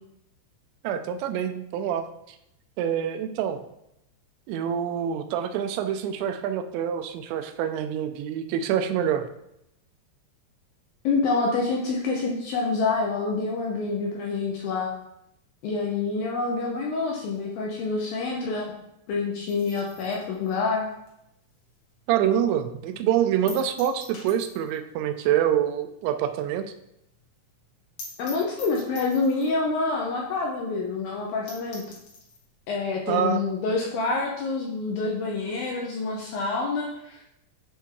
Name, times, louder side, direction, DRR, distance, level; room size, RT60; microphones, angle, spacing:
voice 1, 0.8-2.1 2.8-3.7 4.5-9.3 22.1-26.7 33.1-33.4, right 9 dB, 85° right, 8 dB, 2.9 m, -26 dB
voice 2, 11.0-14.9 15.6-18.7 19.1-20.9 28.2-31.8 32.7-37.2, left 3 dB, 75° left, -2 dB, 2.1 m, -27 dB
sound 1, 19.5-22.1 22.4-22.5 22.9-23.0 23.5-24.9 25.2-25.3 25.5-25.6 26.0-26.1 26.4-26.5 26.8-26.9 27.2-27.3 27.6-27.7 28.0-29.6 30.3-30.4 30.8-30.9 31.2-31.3 31.5-32.5, left 3 dB, 55° left, 2.0 m, -44 dB
10.0 x 3.4 x 4.6 m, 0.82 s
omnidirectional pair, 5.1 m